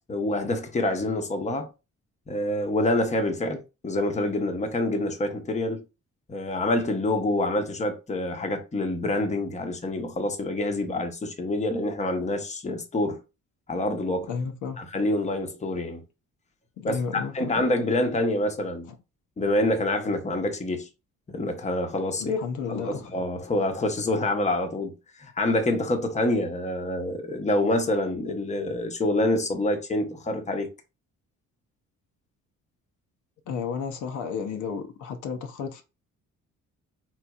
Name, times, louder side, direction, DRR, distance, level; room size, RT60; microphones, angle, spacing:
voice 1, 0.1-1.7 2.3-5.8 6.3-13.2 13.7-14.3 14.8-16.0 16.8-18.9 19.4-20.9 21.3-22.4 22.7-30.7, left 1 dB, 25° left, 0.8 m, -27 dB
voice 2, 14.3-14.8 16.8-17.5 22.2-23.1 33.5-35.8, left 6 dB, 75° left, 0.7 m, -32 dB
3.9 x 2.9 x 2.3 m
cardioid pair, 90°, 30 cm